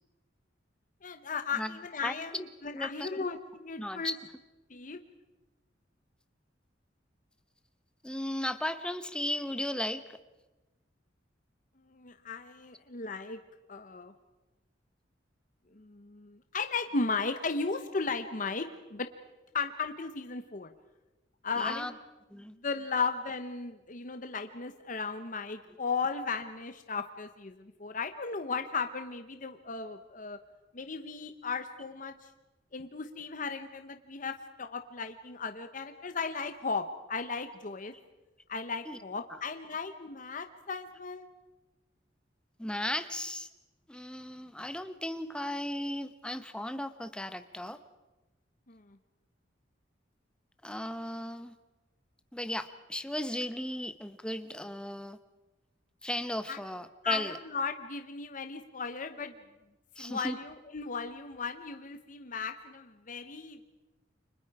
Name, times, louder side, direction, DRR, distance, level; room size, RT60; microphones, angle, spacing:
voice 1, 1.0-4.1 4.7-5.0 11.8-13.4 13.7-14.1 15.7-19.1 19.5-20.7 21.4-22.0 22.4-30.4 30.7-32.3 32.7-37.9 38.5-41.3 48.7-49.0 56.5-56.6 57.0-59.4 60.0-63.6, left 4 dB, 45° left, 8 dB, 0.9 m, -36 dB
voice 2, 2.0-2.5 2.7-3.1 3.8-4.2 8.0-10.0 21.6-21.9 22.3-22.5 38.9-39.0 42.6-43.5 43.9-47.8 50.6-51.5 52.3-55.2 56.0-57.4 60.0-60.4, left 1 dB, 5° left, 10 dB, 1.0 m, -36 dB
29.5 x 24.5 x 4.8 m, 1.1 s
head